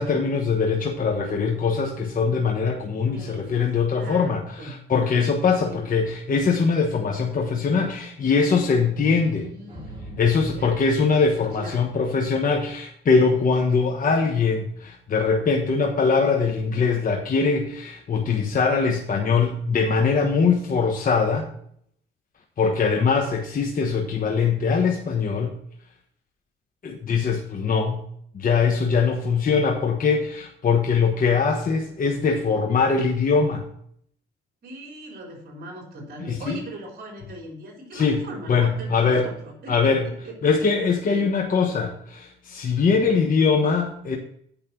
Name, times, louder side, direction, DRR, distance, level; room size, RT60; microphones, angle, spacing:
voice 1, 0.0-9.5 10.2-21.5 22.6-25.6 26.8-28.0 28.3-33.7 36.3-36.6 37.9-38.2 38.5-39.3 39.7-40.0 40.4-44.2, left 5 dB, 45° left, 2 dB, 1.2 m, -22 dB
voice 2, 3.0-3.5 4.0-4.8 5.6-5.8 9.2-10.2 10.5-11.8 34.6-40.4 41.1-41.3, right 1 dB, 50° right, -1 dB, 3.9 m, -40 dB
sound 1, 9.7-12.2, right 1 dB, 25° right, 3.2 m, -42 dB
8.9 x 5.3 x 6.0 m, 0.67 s
cardioid pair, 90°, 20 cm